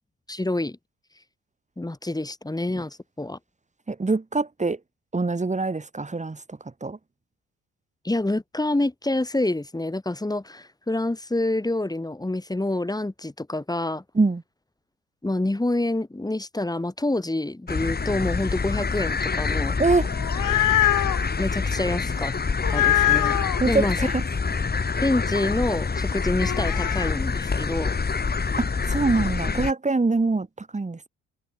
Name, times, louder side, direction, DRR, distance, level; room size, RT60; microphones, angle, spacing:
voice 1, 0.3-0.8 1.8-3.4 8.0-14.0 15.2-19.8 21.4-22.3 22.7-23.3 23.7-24.0 25.0-27.9, left 2 dB, 10° left, 6.5 m, -27 dB
voice 2, 3.9-4.8 5.1-7.0 14.1-14.4 19.8-20.1 23.6-24.2 28.6-31.1, right 3 dB, 20° right, 4.8 m, -24 dB
sound 1, 17.7-29.7, left 4 dB, 30° left, 3.5 m, -26 dB
sound 2, 20.1-21.2 22.6-23.6 26.4-27.1, left 14 dB, 65° left, 1.9 m, -23 dB
supercardioid pair, 70°, 33 cm